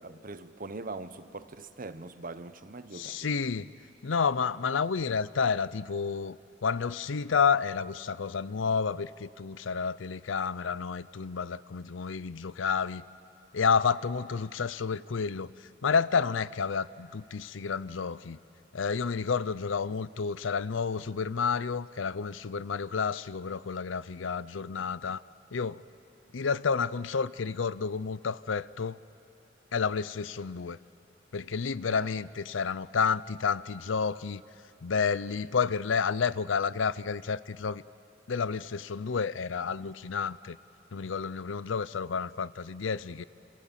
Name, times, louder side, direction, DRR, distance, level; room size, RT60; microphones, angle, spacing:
voice 1, 0.0-3.5 19.8-19.9 31.9-32.1, right 3 dB, 45° right, 12 dB, 0.9 m, -42 dB
voice 2, 2.9-3.7 4.0-6.4 6.6-13.0 13.5-15.5 15.8-18.4 18.7-25.2 25.5-25.8 26.3-29.0 29.7-30.8 31.3-34.4 34.8-37.8 38.3-40.6 40.9-43.2, left 5 dB, 80° left, 18 dB, 0.6 m, -30 dB
28.0 x 27.0 x 7.4 m, 2.6 s
head